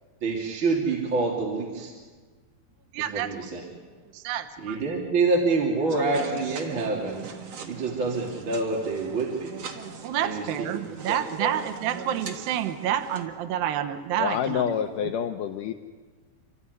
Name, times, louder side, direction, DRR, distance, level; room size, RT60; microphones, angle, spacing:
voice 1, 0.2-1.9 3.0-3.7 4.6-7.3 7.7-9.6 10.2-11.5, right 3 dB, 30° right, -2 dB, 3.2 m, -27 dB
voice 2, 2.9-3.3 4.1-4.8 10.0-14.7 15.0-15.1, right 10 dB, 70° right, 8 dB, 2.5 m, -29 dB
sound 1, 5.9-13.3, right 6 dB, 50° right, 2.0 m, -40 dB
voice 3, 14.2-15.7, left 8 dB, 80° left, 6 dB, 1.9 m, -27 dB
29.5 x 14.0 x 9.7 m, 1.5 s
omnidirectional pair, 4.8 m